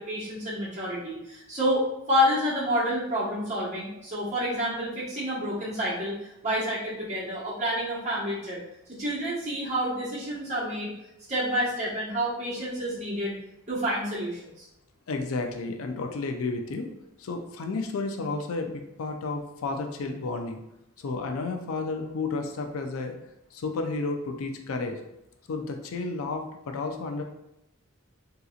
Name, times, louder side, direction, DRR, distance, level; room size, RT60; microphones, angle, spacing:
voice 1, 0.1-1.8 2.1-6.1 6.4-8.6 9.0-10.9 11.3-13.3 13.7-14.6, equal, 30° right, -8 dB, 1.2 m, -28 dB
voice 2, 15.1-16.9 17.2-20.6 21.0-23.1 23.5-25.0 25.5-27.2, left 3 dB, 80° left, 5 dB, 0.4 m, -32 dB
3.7 x 2.9 x 2.4 m, 0.86 s
head